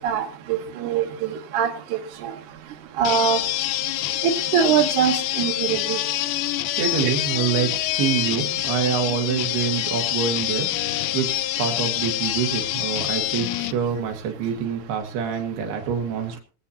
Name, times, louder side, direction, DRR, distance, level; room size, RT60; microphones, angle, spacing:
voice 1, 0.0-2.3 3.0-3.4 4.2-6.0, right 7 dB, 65° right, 1 dB, 2.2 m, -23 dB
sound 1, 3.0-13.7, left 15 dB, 80° left, 2.4 m, -26 dB
voice 2, 6.8-10.7 11.1-16.4, right 7 dB, 85° right, 4 dB, 4.0 m, -26 dB
24.5 x 8.5 x 2.9 m, 0.39 s
omnidirectional pair, 4.5 m